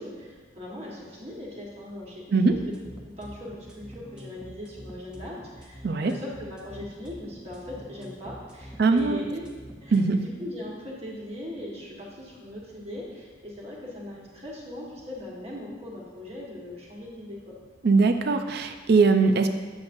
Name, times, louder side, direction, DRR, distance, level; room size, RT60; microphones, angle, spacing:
voice 1, 0.0-2.6 3.2-9.4 9.8-17.5, left 1 dB, 35° right, -4 dB, 1.4 m, -39 dB
sound 1, 2.5-10.1, equal, 5° right, 0.6 m, -45 dB
voice 2, 8.8-9.2 9.9-10.2 17.8-19.5, right 4 dB, 55° right, 7 dB, 0.4 m, -21 dB
8.0 x 6.9 x 2.6 m, 1.4 s
head